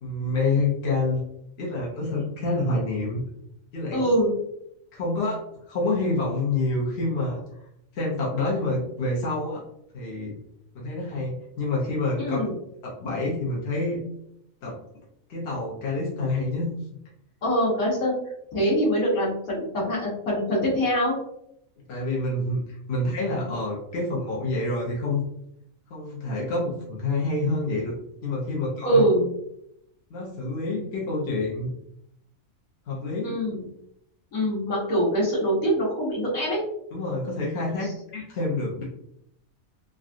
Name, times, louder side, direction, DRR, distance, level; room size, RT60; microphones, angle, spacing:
voice 1, 0.0-1.2 1.6-3.2 3.7-4.0 4.9-7.4 7.9-9.6 9.9-10.3 10.7-12.4 12.8-14.0 14.6-14.8 15.3-16.7 21.9-25.2 25.9-27.9 28.2-29.0 30.1-31.7 32.9-33.3 36.9-38.8, left 2 dB, 55° left, -5 dB, 0.9 m, -27 dB
voice 2, 3.9-4.3 12.2-12.5 17.4-18.1 18.5-21.2 28.8-29.3 33.2-33.7 34.3-36.6 37.8-37.9, equal, 75° left, -7 dB, 1.5 m, -24 dB
3.7 x 2.2 x 2.5 m, 0.76 s
omnidirectional pair, 1.5 m